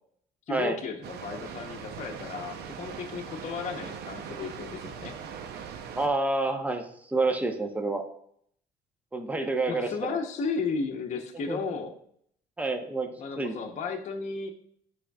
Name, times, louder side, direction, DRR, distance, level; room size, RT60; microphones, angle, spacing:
voice 1, 0.5-5.1 9.7-12.0 13.2-14.5, left 5 dB, 45° left, 1 dB, 0.8 m, -34 dB
Water, 1.0-6.1, right 7 dB, 75° right, 0.7 m, -40 dB
voice 2, 6.0-8.0 9.1-10.2 11.5-11.6 12.6-13.1 13.4-13.5, right 2 dB, 10° right, 5 dB, 0.8 m, -28 dB
9.7 x 5.0 x 2.3 m, 0.67 s
cardioid pair, 110°, 17 cm